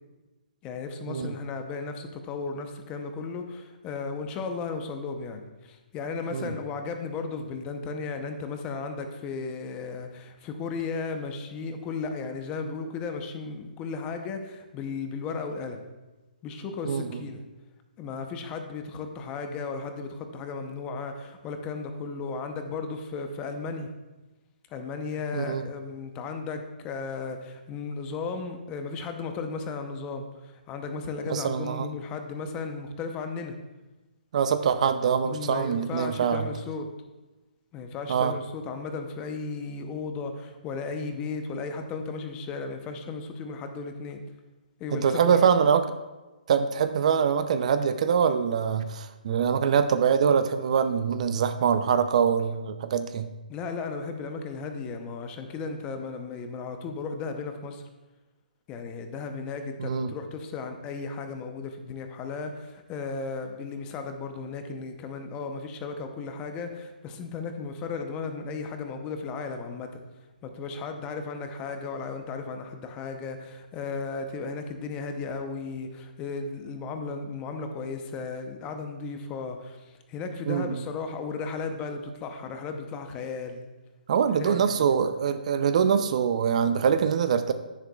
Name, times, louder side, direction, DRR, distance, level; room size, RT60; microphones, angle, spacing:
voice 1, 0.6-15.8 16.4-17.4 18.0-23.9 24.7-33.5 35.2-36.9 37.7-44.2 44.8-45.5 53.5-57.8 58.7-70.0 70.4-83.7 84.3-84.9, left 4 dB, 20° left, 6 dB, 0.7 m, -35 dB
voice 2, 16.8-17.2 25.3-25.6 31.3-31.9 34.3-36.5 38.1-38.3 44.9-45.8 46.5-53.3 59.8-60.1 80.5-80.8 84.1-87.5, right 7 dB, 45° right, 10 dB, 0.5 m, -24 dB
10.0 x 9.8 x 2.3 m, 1.2 s
hypercardioid pair, 155°, 5 cm